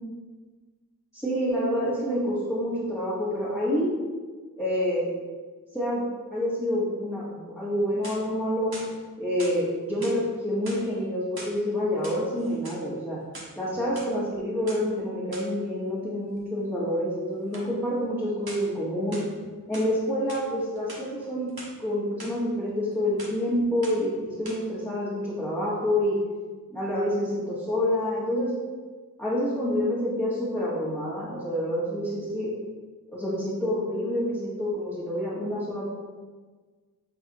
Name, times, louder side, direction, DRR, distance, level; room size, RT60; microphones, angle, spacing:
voice 1, 1.1-3.9 4.6-5.1 5.7-8.7 9.2-13.2 13.6-19.2 19.7-21.5 21.8-26.2 26.7-28.5 29.2-32.5 33.1-35.9, equal, 10° left, -10 dB, 1.7 m, -27 dB
sound 1, 7.8-8.4 8.7-9.6 10.0-10.2 10.6-11.6 11.9-12.8 13.2-14.1 14.7-14.8 15.3-15.5 17.5-17.7 18.5-18.8 19.1-19.9 20.3-20.5 20.8-21.7 22.2-22.3 22.7-22.9 23.2-23.5 23.8-24.1 24.4-24.6, right 1 dB, 80° right, 1.3 m, -43 dB
8.8 x 4.0 x 3.0 m, 1.4 s
wide cardioid pair, 45°, 37 cm